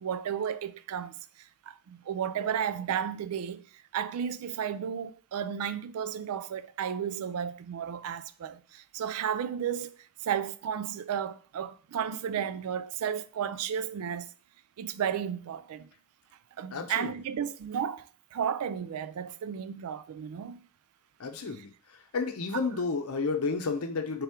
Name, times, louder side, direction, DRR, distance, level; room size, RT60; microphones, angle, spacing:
voice 1, 0.0-3.7 3.9-10.0 10.2-14.3 14.8-15.9 16.6-20.6 21.5-21.6, right 8 dB, 80° right, 0.4 m, -33 dB
voice 2, 16.7-17.1 21.2-21.7 22.1-24.2, left 4 dB, 80° left, 0.7 m, -31 dB
3.5 x 3.4 x 4.3 m
head